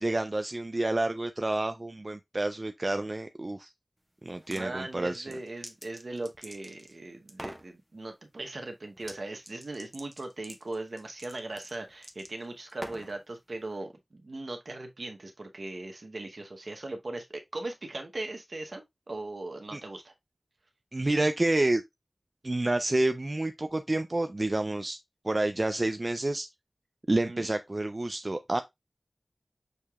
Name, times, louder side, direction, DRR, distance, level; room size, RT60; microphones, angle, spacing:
voice 1, 0.0-3.7 4.2-5.3 19.7-19.8 20.9-21.8 22.4-25.0 25.2-26.5 27.1-28.6, right 2 dB, 45° right, 0.3 m, -29 dB
sound 1, 4.3-4.7 5.1-7.0 7.3-7.7 9.0-9.2 9.4-13.2, equal, 5° right, 0.8 m, -45 dB
voice 2, 4.5-20.1 27.2-27.5, right 2 dB, 70° right, 0.9 m, -39 dB
6.5 x 2.8 x 2.3 m
wide cardioid pair, 40°, 0 cm